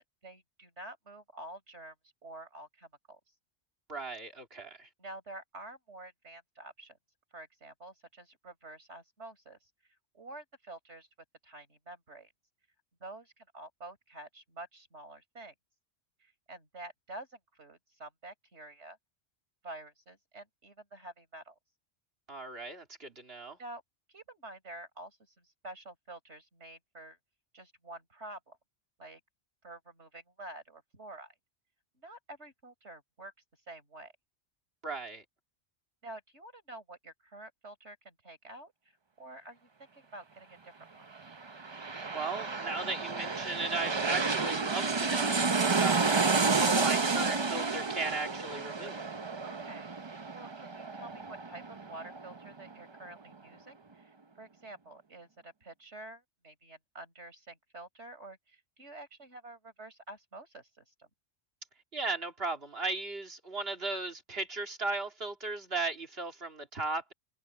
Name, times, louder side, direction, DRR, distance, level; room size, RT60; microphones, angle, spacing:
voice 1, 0.0-3.2 5.0-7.0 7.3-9.7 10.1-11.1 11.4-12.3 13.0-15.5 16.2-19.0 19.6-21.6 23.6-23.8 24.1-27.2 27.5-28.6 29.0-29.2 29.6-31.3 32.0-33.3 33.7-34.1 36.0-38.7 39.2-41.1 49.4-49.9 50.3-61.1, right 2 dB, 85° right, 5.4 m, -49 dB
voice 2, 3.9-4.9 22.3-23.6 34.8-35.2 42.1-49.0 61.9-67.1, right 3 dB, 60° right, 2.9 m, -36 dB
sound 1, 41.3-52.7 53.1-53.2, right 4 dB, 30° right, 0.7 m, -31 dB
omnidirectional pair, 1.1 m